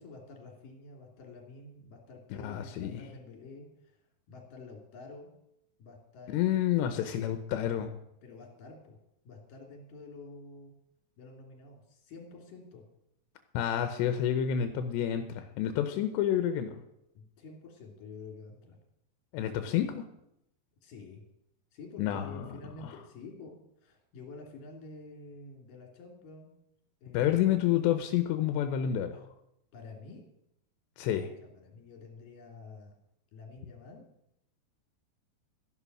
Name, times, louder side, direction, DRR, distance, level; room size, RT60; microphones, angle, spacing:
voice 1, 0.0-4.0 4.3-5.3 5.8-6.5 6.8-7.0 8.2-9.0 9.2-10.7 11.2-12.8 17.1-18.8 19.6-19.7 20.8-21.2 21.7-26.5 27.0-27.3 29.7-30.2 31.4-33.0 33.3-34.0, left 3 dB, 55° left, 1 dB, 4.4 m, -49 dB
voice 2, 2.3-3.1 6.3-7.9 13.5-16.8 19.3-20.0 22.0-22.9 27.1-29.2 31.0-31.3, left 10 dB, 85° left, 8 dB, 3.1 m, -29 dB
13.5 x 11.0 x 6.1 m, 0.80 s
omnidirectional pair, 4.9 m